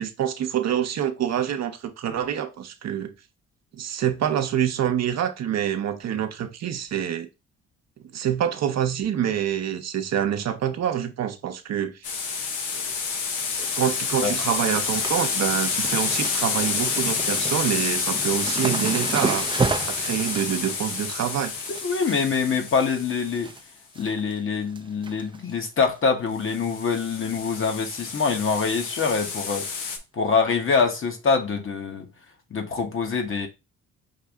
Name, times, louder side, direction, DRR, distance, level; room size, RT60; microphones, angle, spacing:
voice 1, 0.0-3.1 3.7-7.3 8.0-12.1 12.7-12.9 13.6-21.5, right 9 dB, 60° right, 0.8 m, -26 dB
sound 1, 12.0-23.5 26.4-30.0, left 5 dB, 90° left, 1.0 m, -29 dB
sound 2, 14.1-14.2 14.4-23.6 23.9-24.4 24.7-25.5 25.9-26.0 26.9-27.2 27.4-27.5 27.9-28.0 29.6-29.7 30.5-30.6, right 4 dB, 15° right, 0.5 m, -33 dB
voice 2, 21.8-23.5 23.9-29.7 30.2-32.1 32.5-33.5, left 5 dB, 45° left, 1.2 m, -24 dB
5.7 x 2.7 x 3.4 m
cardioid pair, 90°, 30 cm